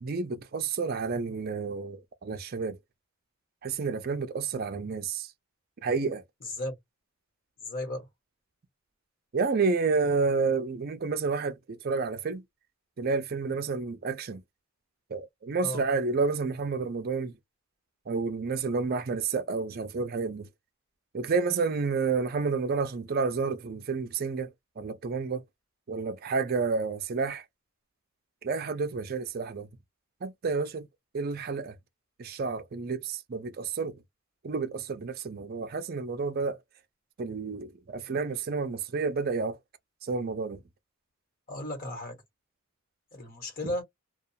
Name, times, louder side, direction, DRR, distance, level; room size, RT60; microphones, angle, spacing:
voice 1, 0.0-2.8 3.6-5.3 5.8-6.2 9.3-12.4 13.0-14.4 15.1-17.3 18.1-20.5 21.1-24.5 24.8-25.4 25.9-27.4 28.4-29.7 30.2-30.9 31.1-31.7 32.2-34.0 34.4-36.6 37.2-39.6 40.0-40.6, right 4 dB, 45° right, 0.5 m, -30 dB
voice 2, 6.4-6.7 7.6-8.1 15.6-15.8 41.5-42.2 43.1-43.8, left 1 dB, 45° left, 1.3 m, -35 dB
2.3 x 2.3 x 2.7 m
head